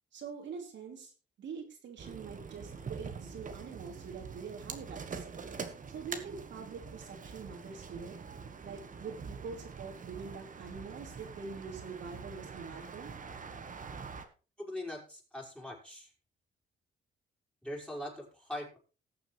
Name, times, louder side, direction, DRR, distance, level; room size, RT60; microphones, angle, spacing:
voice 1, 0.1-1.1 1.4-5.2 5.9-8.2 8.6-13.1, right 5 dB, 70° right, 2 dB, 2.9 m, -44 dB
sound 1, 2.0-14.2, right 5 dB, 40° right, 1.5 m, -45 dB
voice 2, 14.6-16.1 17.6-18.8, left 1 dB, 5° left, -2 dB, 4.6 m, -41 dB
19.0 x 7.0 x 3.3 m, 0.34 s
cardioid pair, 90°, 20 cm